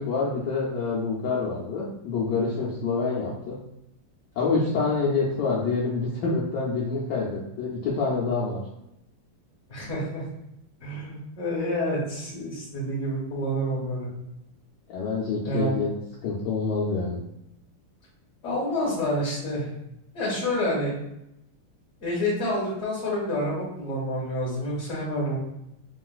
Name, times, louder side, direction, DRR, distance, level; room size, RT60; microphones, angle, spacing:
voice 1, 0.0-3.6 4.4-8.6 14.9-15.9 16.2-17.2, left 4 dB, 80° left, -5 dB, 0.9 m, -27 dB
voice 2, 9.7-10.2 10.8-14.1 15.4-15.7 18.4-19.7 20.1-20.9 22.0-25.4, equal, 50° left, -6 dB, 0.9 m, -28 dB
3.7 x 2.4 x 2.3 m, 0.83 s
omnidirectional pair, 2.4 m